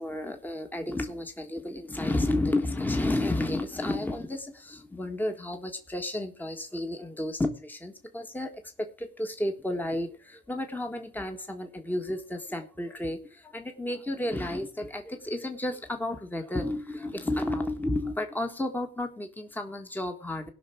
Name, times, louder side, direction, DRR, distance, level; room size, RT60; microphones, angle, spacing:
voice 1, 0.0-20.5, left 1 dB, 10° left, 5 dB, 1.6 m, -32 dB
17.5 x 5.9 x 5.9 m, 0.38 s
cardioid pair, 90°, 20 cm